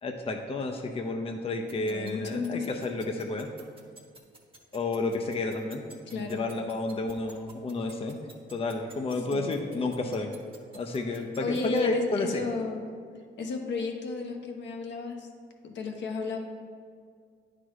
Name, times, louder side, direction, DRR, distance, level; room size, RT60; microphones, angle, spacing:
voice 1, 0.0-3.5 4.7-5.8 6.1-8.2 8.5-10.3 10.7-12.5, left 2 dB, 30° left, 3 dB, 0.6 m, -31 dB
sound 1, 1.7-11.8, right 3 dB, 25° right, 1.2 m, -50 dB
voice 2, 1.8-2.8 6.1-6.4 9.3-9.6 11.1-12.8 13.4-15.3 15.6-16.4, left 4 dB, 65° left, 2 dB, 1.0 m, -33 dB
9.7 x 4.0 x 4.7 m, 2.1 s
cardioid pair, 90°, 20 cm